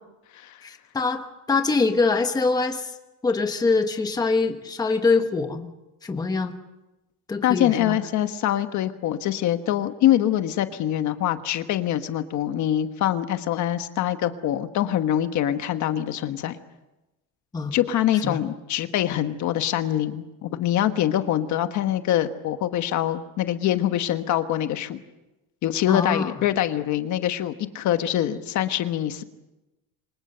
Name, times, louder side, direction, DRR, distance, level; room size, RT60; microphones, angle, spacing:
voice 1, 0.6-2.9 3.2-5.7 6.0-6.6 7.3-8.0 17.5-17.8 18.2-18.4 25.9-26.3, left 4 dB, 10° left, 6 dB, 1.2 m, -24 dB
voice 2, 7.4-16.6 17.7-25.0 25.6-29.2, left 12 dB, 45° left, 9 dB, 1.2 m, -24 dB
28.0 x 25.0 x 6.8 m, 1.0 s
cardioid pair, 175°, 40 cm